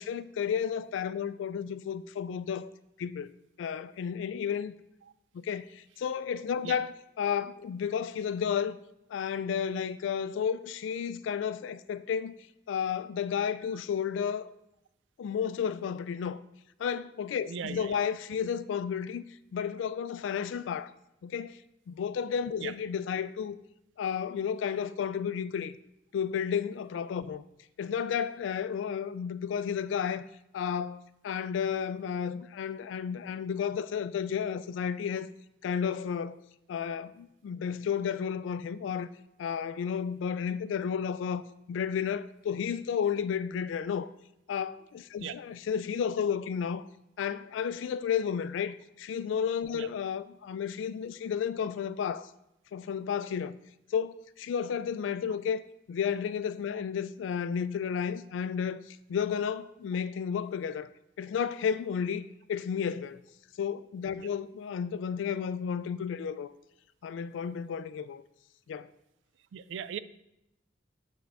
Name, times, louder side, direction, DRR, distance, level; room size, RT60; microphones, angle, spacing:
voice 1, 0.0-2.7 3.0-3.3 3.6-4.7 5.3-8.8 9.1-12.4 12.7-14.5 15.2-16.4 16.8-19.2 19.5-20.9 21.2-21.6 21.9-23.6 24.0-25.8 26.1-27.4 27.8-30.3 30.5-31.0 31.2-35.3 35.6-36.4 36.7-39.1 39.4-44.1 44.5-46.8 47.2-52.3 52.7-53.6 53.9-55.6 55.9-60.9 61.2-63.2 63.6-66.5 67.0-68.2 68.7-68.9, left 7 dB, 90° left, 0.3 m, -32 dB
voice 2, 17.5-18.0 22.6-22.7 45.2-45.4 49.7-49.9 64.2-64.3 69.5-70.0, right 8 dB, 80° right, 0.3 m, -38 dB
8.0 x 3.7 x 3.5 m
head